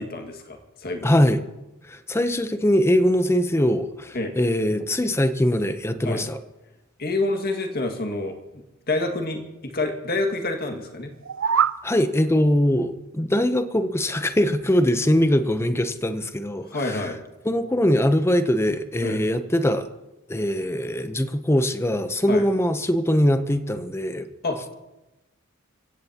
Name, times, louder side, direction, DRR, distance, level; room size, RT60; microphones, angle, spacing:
voice 1, 0.0-1.1 4.1-4.3 6.0-6.2 7.0-8.4 8.9-11.1 16.6-17.2 19.0-19.2 22.3-22.4 24.4-24.6, left 2 dB, 45° left, 4 dB, 1.9 m, -27 dB
voice 2, 1.0-1.4 1.9-6.4 11.8-16.7 16.9-17.0 17.4-19.9 20.3-24.3, equal, 10° left, 10 dB, 0.7 m, -22 dB
sound 1, 11.1-11.8, right 8 dB, 65° right, 0.5 m, -22 dB
24.5 x 16.0 x 2.9 m, 1.0 s
head